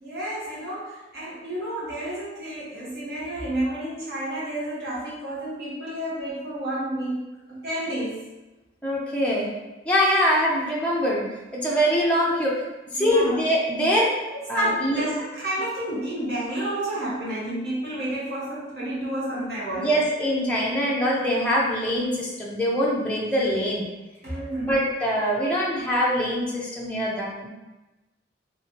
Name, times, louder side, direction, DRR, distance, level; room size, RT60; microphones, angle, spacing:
voice 1, 0.0-8.3 13.0-13.4 14.3-19.9 24.2-24.8, right 1 dB, 60° right, -8 dB, 1.3 m, -30 dB
voice 2, 8.8-9.5 9.9-11.3 11.5-12.6 12.9-14.1 14.5-15.0 19.8-23.9 24.6-27.5, equal, 5° left, -5 dB, 0.5 m, -23 dB
3.3 x 3.1 x 2.8 m, 1.1 s
head